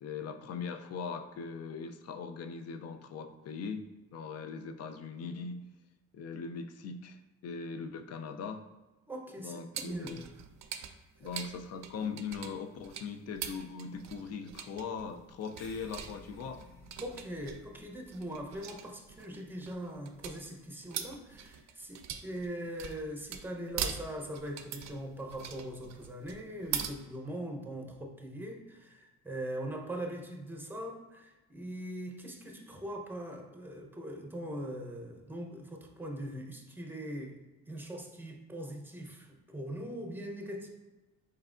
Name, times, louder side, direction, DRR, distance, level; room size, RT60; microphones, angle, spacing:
voice 1, 0.0-3.8 4.1-5.6 6.1-8.6 9.4-10.2 11.2-16.6, left 5 dB, 55° left, 8 dB, 0.4 m, -40 dB
voice 2, 9.1-10.2 17.0-40.7, right 1 dB, 5° right, 2 dB, 0.6 m, -41 dB
sound 1, 9.7-26.9, right 8 dB, 65° right, 0.4 m, -42 dB
sound 2, 15.6-20.4, left 1 dB, 40° left, 0.9 m, -57 dB
4.4 x 3.3 x 2.4 m, 1.1 s
cardioid pair, 90°, 30 cm